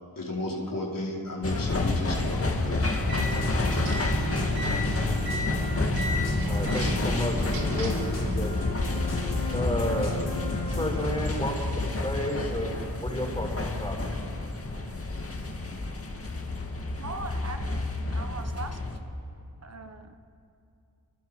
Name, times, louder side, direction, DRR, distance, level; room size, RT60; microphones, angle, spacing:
voice 1, 0.2-3.4, left 2 dB, 60° left, -2 dB, 4.1 m, -34 dB
sound 1, 1.4-19.0, left 2 dB, 35° left, 2.0 m, -30 dB
sound 2, 2.9-8.1, equal, 85° right, 4.5 m, -34 dB
sound 3, 3.1-10.9, left 2 dB, 80° left, 4.8 m, -33 dB
voice 2, 6.4-8.8 9.5-10.1 10.7-12.7 13.0-14.0, equal, 15° left, 0 dB, 6.1 m, -32 dB
voice 3, 17.0-17.9 18.1-18.8 19.6-20.2, right 3 dB, 40° right, 6 dB, 1.2 m, -39 dB
26.0 x 22.5 x 4.9 m, 2.6 s
wide cardioid pair, 80°, 38 cm